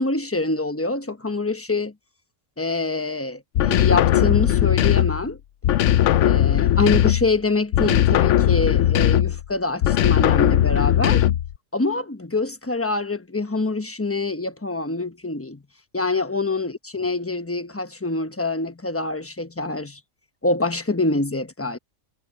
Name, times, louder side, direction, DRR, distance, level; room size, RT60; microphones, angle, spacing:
voice 1, 0.0-1.9 2.6-5.4 6.2-11.2 11.7-15.6 15.9-20.0 20.4-21.8, left 3 dB, 10° left, 0.9 m, -25 dB
sound 1, 3.6-5.3 5.6-7.4 7.7-9.4 9.8-11.5, left 12 dB, 70° left, 0.9 m, -18 dB
omnidirectional pair, 1.3 m